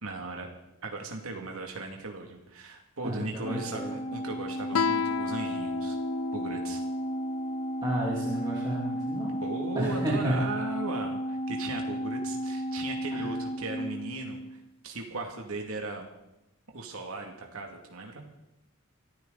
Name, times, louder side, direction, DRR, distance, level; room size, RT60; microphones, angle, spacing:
voice 1, 0.0-0.5 0.8-6.0 6.3-6.8 9.4-16.1 16.7-18.3, right 3 dB, 80° right, 1 dB, 2.4 m, -37 dB
voice 2, 3.0-3.9 7.8-9.4 9.7-10.4 13.1-13.2, right 1 dB, 20° right, -5 dB, 3.1 m, -31 dB
Organ, 3.4-14.7, equal, 30° left, 1.0 m, -34 dB
Guitar, 4.7-8.0, left 6 dB, 70° left, 0.5 m, -33 dB
24.5 x 14.0 x 4.0 m, 0.91 s
head